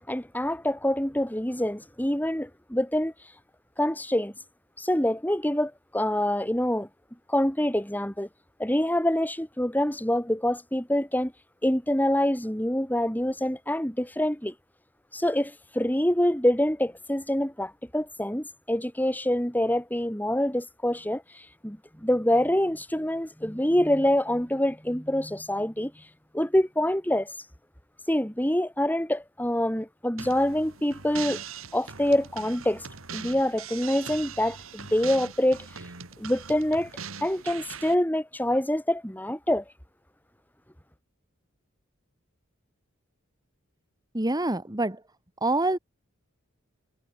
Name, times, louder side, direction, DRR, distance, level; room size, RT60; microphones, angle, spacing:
voice 1, 0.1-3.1 3.8-4.3 4.8-6.9 7.3-8.3 8.6-11.3 11.6-14.5 15.1-21.2 21.6-25.9 26.3-27.3 28.1-31.4 31.7-32.9 33.1-35.7 36.2-36.9 37.2-39.6, left 1 dB, 10° left, 3.8 m, -26 dB
sound 1, 30.2-38.0, right 6 dB, 80° right, 2.9 m, -41 dB
voice 2, 44.1-45.0 45.4-45.8, right 2 dB, 20° right, 1.9 m, -26 dB
head